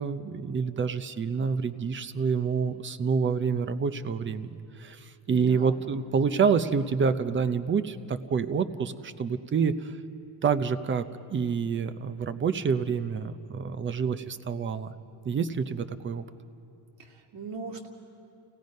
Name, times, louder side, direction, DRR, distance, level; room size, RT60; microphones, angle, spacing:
voice 1, 0.0-10.0 10.4-14.9 15.2-16.2, right 6 dB, 25° right, 12 dB, 0.6 m, -28 dB
voice 2, 5.3-5.7 17.0-17.9, right 3 dB, 70° right, 0 dB, 2.6 m, -40 dB
29.5 x 17.0 x 5.3 m, 2.6 s
cardioid pair, 135°, 44 cm